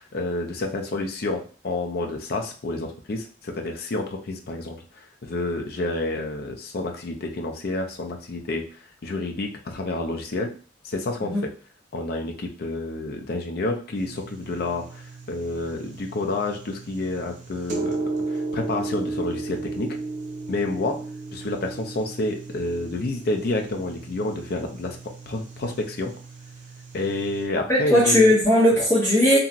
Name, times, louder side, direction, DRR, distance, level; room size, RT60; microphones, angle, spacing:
voice 1, 0.0-4.8 5.2-8.7 9.0-10.5 10.8-11.4 11.9-15.0 15.3-20.0 20.5-21.0 21.3-25.0 25.3-26.1 26.9-28.3, left 2 dB, 55° left, 3 dB, 0.5 m, -29 dB
sound 1, 13.9-27.5, right 3 dB, 45° right, 0.6 m, -35 dB
voice 2, 27.7-29.4, left 1 dB, 15° left, -7 dB, 0.8 m, -18 dB
2.8 x 2.6 x 2.5 m, 0.40 s
head